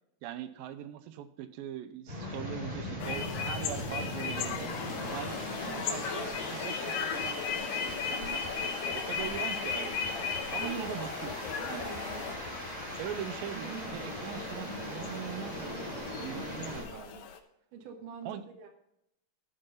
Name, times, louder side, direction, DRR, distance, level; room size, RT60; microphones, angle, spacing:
voice 1, 0.2-4.8 5.1-5.4 5.7-7.4 7.8-10.1 10.5-11.9 13.0-17.3 18.3-18.4, right 10 dB, 90° right, 10 dB, 2.4 m, -41 dB
sound 1, 2.1-16.8, equal, 20° right, 3.8 m, -40 dB
sound 2, 3.0-17.4, left 7 dB, 80° left, 2.6 m, -37 dB
voice 2, 11.6-12.4 13.5-13.9 14.3-15.3 17.7-18.7, right 7 dB, 70° right, 3 dB, 2.8 m, -47 dB
12.5 x 5.3 x 5.6 m, 0.80 s
omnidirectional pair, 4.0 m